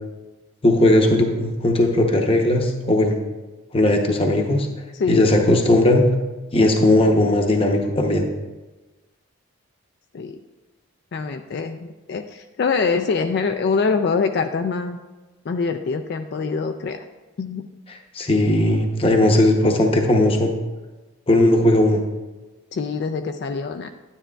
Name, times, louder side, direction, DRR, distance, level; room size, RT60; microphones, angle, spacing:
voice 1, 0.6-3.2 3.7-4.7 5.1-6.1 6.5-8.3 17.9-20.5 21.3-22.0, left 1 dB, 25° left, 2 dB, 0.7 m, -17 dB
voice 2, 11.1-15.0 15.5-17.0 17.4-17.6 22.7-23.9, left 5 dB, 50° left, 6 dB, 0.3 m, -24 dB
10.0 x 9.8 x 2.3 m, 1.2 s
head